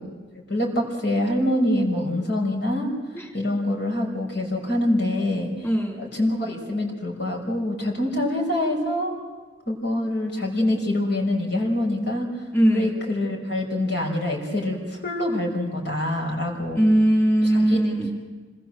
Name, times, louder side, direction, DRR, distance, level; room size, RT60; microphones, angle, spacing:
voice 1, 0.3-2.9 3.3-5.5 6.0-9.1 9.7-12.3 12.7-16.8 17.5-17.8, left 1 dB, 65° left, 0 dB, 5.9 m, -25 dB
voice 2, 5.6-6.0 12.5-13.0 16.8-18.1, right 1 dB, 15° left, -1 dB, 4.0 m, -20 dB
26.5 x 20.5 x 7.9 m, 1.4 s
head